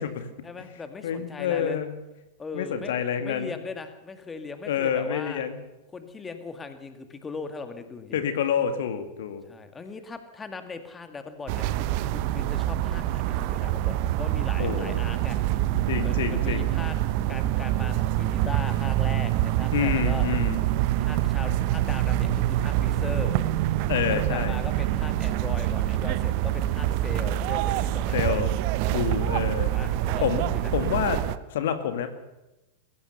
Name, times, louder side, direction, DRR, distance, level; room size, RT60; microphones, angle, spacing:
voice 1, 0.4-1.8 2.4-2.9 3.2-5.4 5.9-8.2 9.4-11.7 12.1-15.4 16.0-17.0 17.3-20.3 20.7-23.4 24.1-28.5 29.7-30.4, left 4 dB, 15° left, 8 dB, 2.2 m, -39 dB
voice 2, 1.0-1.9 2.5-3.5 4.7-5.6 8.1-9.4 14.6-15.1 15.9-16.7 19.7-20.6 23.9-24.6 28.1-28.5 28.9-29.7 30.2-31.2 31.5-32.1, left 8 dB, 55° left, 9 dB, 2.1 m, -28 dB
sound 1, 11.5-31.4, right 13 dB, 45° right, 1.0 m, -26 dB
22.5 x 16.5 x 7.0 m, 0.97 s
figure-of-eight pair, 90°, 0 cm